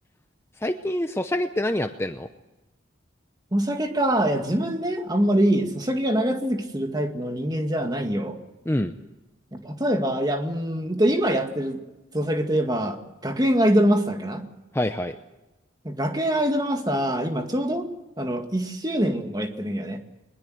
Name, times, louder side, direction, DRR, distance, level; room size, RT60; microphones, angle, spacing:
voice 1, 0.6-2.3 8.7-8.9 14.7-15.1, left 1 dB, 15° left, 7 dB, 0.7 m, -26 dB
voice 2, 3.5-8.4 9.6-11.8 12.1-13.0 13.2-14.4 15.9-17.9 18.2-20.0, right 1 dB, 20° right, 5 dB, 2.0 m, -24 dB
22.5 x 20.5 x 7.9 m, 1.1 s
head